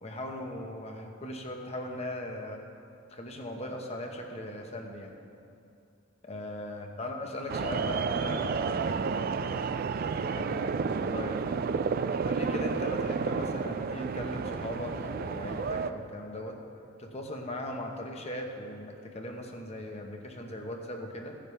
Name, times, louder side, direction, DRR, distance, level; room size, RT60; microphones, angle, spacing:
voice 1, 0.0-2.6 3.1-5.1 6.2-9.0 10.1-11.6 12.2-16.6 17.0-21.3, left 1 dB, 35° left, 2 dB, 1.0 m, -39 dB
sound 1, 7.5-15.9, right 5 dB, 50° right, 0.3 m, -31 dB
15.5 x 10.0 x 3.3 m, 2.5 s
head